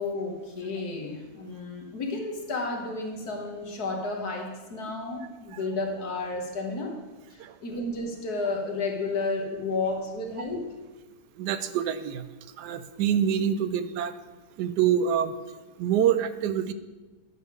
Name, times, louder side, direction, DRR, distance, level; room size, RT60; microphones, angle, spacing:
voice 1, 0.0-7.0 7.3-10.7, left 3 dB, 65° left, 1 dB, 1.7 m, -32 dB
voice 2, 11.4-12.3 12.6-14.1 14.6-15.3 15.8-16.7, right 9 dB, 75° right, 12 dB, 1.1 m, -26 dB
10.5 x 3.5 x 6.6 m, 1.2 s
omnidirectional pair, 1.8 m